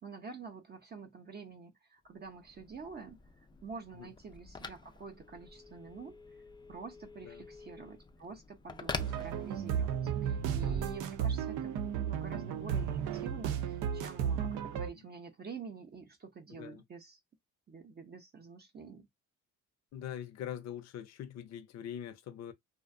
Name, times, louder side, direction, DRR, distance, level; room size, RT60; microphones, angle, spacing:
voice 1, 0.0-3.2 3.6-6.2 6.7-17.2 17.7-19.1, right 5 dB, 35° right, 0.6 m, -48 dB
Telephone, 2.1-10.0, left 4 dB, 15° left, 0.3 m, -47 dB
sound 1, 9.0-14.9, right 8 dB, 90° right, 0.5 m, -34 dB
voice 2, 16.5-16.8 19.9-22.5, left 10 dB, 60° left, 0.6 m, -43 dB
2.4 x 2.1 x 2.4 m
cardioid pair, 90°, 30 cm